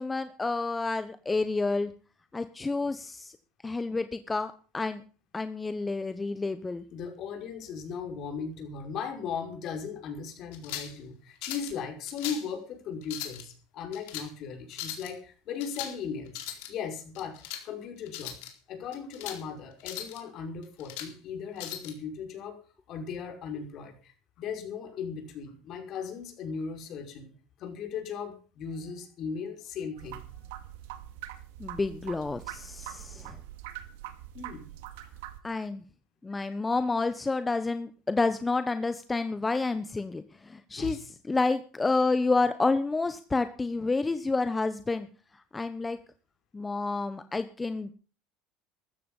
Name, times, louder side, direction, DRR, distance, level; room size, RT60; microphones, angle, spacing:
voice 1, 0.0-1.9 2.3-3.3 3.6-5.0 5.3-6.8 31.6-33.4 35.4-35.8 36.2-45.1 45.5-46.0 46.5-47.9, left 3 dB, 15° left, 11 dB, 1.1 m, -29 dB
voice 2, 6.9-18.4 18.7-22.6 22.9-27.3 27.6-30.2 34.3-34.7 40.8-41.0, left 6 dB, 55° left, 5 dB, 5.5 m, -37 dB
sound 1, 10.5-11.0 11.4-11.7 12.1-12.5 13.0-13.4 13.9-14.3 14.7-15.1 15.6-16.0 16.3-16.7 17.2-17.6 18.1-18.5 18.9-19.4 19.8-20.2 20.6-21.1 21.6-21.9, left 11 dB, 80° left, 4.1 m, -39 dB
sound 2, 30.0-35.4, right 13 dB, 85° right, 2.4 m, -43 dB
14.5 x 13.5 x 5.6 m, 0.39 s
supercardioid pair, 105°, 0 cm